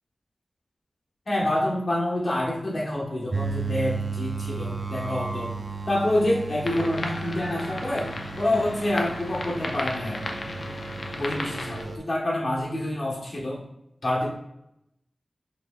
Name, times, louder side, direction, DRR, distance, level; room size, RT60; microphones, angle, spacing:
voice 1, 1.3-5.6 5.9-10.4 11.1-13.6 14.0-14.3, left 1 dB, 50° left, -3 dB, 1.1 m, -27 dB
sound 1, 3.3-12.0, right 4 dB, 40° right, 0.4 m, -34 dB
sound 2, 6.6-11.8, left 2 dB, 70° left, 0.5 m, -35 dB
4.2 x 3.9 x 2.3 m, 0.82 s
wide cardioid pair, 90°, 0 cm